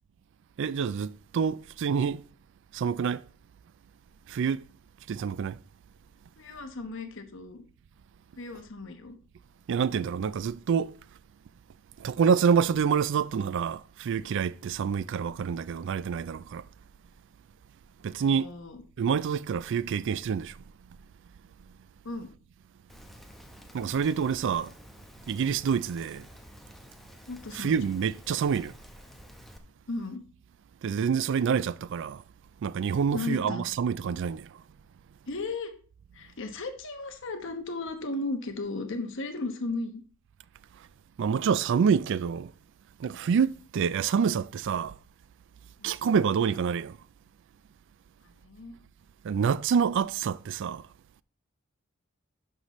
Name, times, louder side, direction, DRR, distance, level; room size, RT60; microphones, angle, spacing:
voice 1, 0.6-2.2 2.7-3.2 4.3-4.7 5.1-5.6 9.7-10.9 12.0-16.6 18.0-18.5 19.0-20.6 23.7-24.7 25.3-26.3 27.5-28.7 30.8-32.2 32.6-34.5 41.2-42.5 43.0-44.9 45.8-47.0 49.2-50.9, right 6 dB, 60° right, 0.3 m, -27 dB
voice 2, 6.4-7.6 8.4-9.2 18.1-18.8 22.0-22.3 27.3-27.8 29.9-30.2 33.1-33.6 35.3-35.7 36.1-40.0 45.8-45.9 48.4-48.8, left 3 dB, 60° left, 1.1 m, -35 dB
Rain, 22.9-29.6, equal, ahead, 0.9 m, -50 dB
11.5 x 5.7 x 3.1 m
head